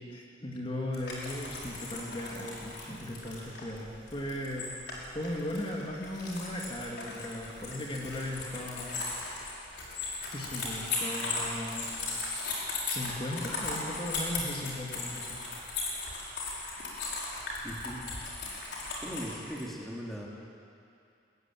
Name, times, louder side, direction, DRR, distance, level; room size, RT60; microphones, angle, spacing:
voice 1, 0.1-9.1 10.3-11.9 12.2-15.4, left 1 dB, 30° left, -1 dB, 2.5 m, -37 dB
sound 1, 0.9-19.6, left 3 dB, 70° left, 5.2 m, -37 dB
voice 2, 17.6-18.0 19.0-20.3, equal, ahead, -3 dB, 2.7 m, -39 dB
22.0 x 15.5 x 9.4 m, 2.5 s
head